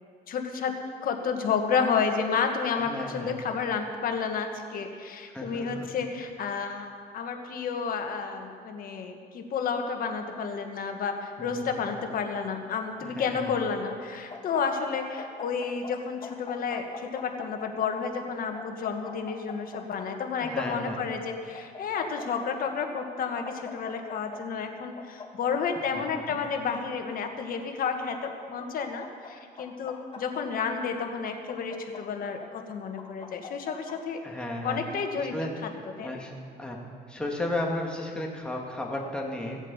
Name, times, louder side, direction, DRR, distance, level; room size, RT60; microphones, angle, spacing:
voice 1, 0.3-0.7 1.0-34.2 34.6-35.3 36.0-36.2, left 6 dB, 55° left, 4 dB, 1.7 m, -31 dB
voice 2, 2.8-3.3 5.3-5.9 11.4-11.9 13.0-13.6 20.4-21.0 25.9-26.0 26.3-26.4 34.2-34.8 35.2-35.5 36.0-36.3 36.6-36.8 37.1-39.6, left 1 dB, 5° left, -1 dB, 2.3 m, -34 dB
sound 1, 14.3-15.9 16.2-18.1 18.5-20.7 21.5-22.7 23.0-23.1 23.4-24.4 25.0-26.0 26.6-27.6 28.4-29.3 29.6-30.9 31.5-32.5 33.0-33.9, left 5 dB, 30° left, 1.9 m, -42 dB
16.5 x 8.2 x 7.2 m, 2.2 s
cardioid pair, 110°, 17 cm